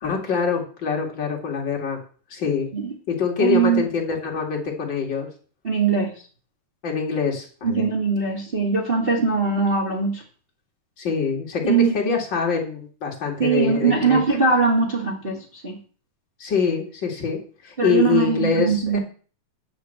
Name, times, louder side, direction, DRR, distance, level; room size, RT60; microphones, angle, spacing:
voice 1, 0.0-2.0 2.3-2.7 3.1-5.3 6.8-7.9 11.0-14.2 16.4-19.0, left 6 dB, 35° left, 0 dB, 2.6 m, -24 dB
voice 2, 3.4-3.8 5.6-6.1 7.6-10.2 11.6-11.9 13.4-15.8 17.8-19.0, right 5 dB, 20° right, -1 dB, 1.7 m, -21 dB
9.8 x 5.2 x 7.7 m, 0.41 s
omnidirectional pair, 3.9 m